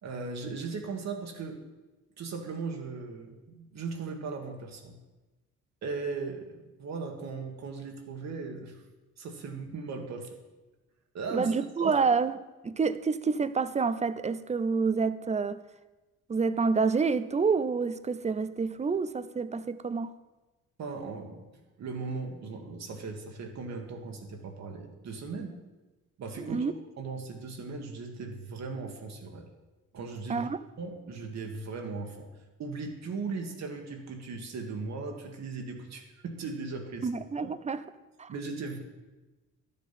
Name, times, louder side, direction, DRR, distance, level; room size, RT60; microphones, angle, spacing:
voice 1, 0.0-1.6 2.2-4.9 5.8-6.5 6.8-8.8 9.2-10.4 11.1-11.5 11.8-12.0 20.8-21.5 21.8-25.6 26.2-26.6 27.0-29.5 29.9-30.5 30.8-32.3 32.6-37.1 37.4-37.5 38.3-38.8, right 4 dB, 60° right, 3 dB, 1.8 m, -38 dB
voice 2, 11.3-12.4 12.6-15.6 16.3-20.1 26.4-26.7 30.3-30.6 37.0-37.8 38.2-38.3, right 5 dB, 25° right, 14 dB, 0.6 m, -28 dB
12.0 x 7.4 x 5.8 m, 1.1 s
cardioid pair, 90°, 30 cm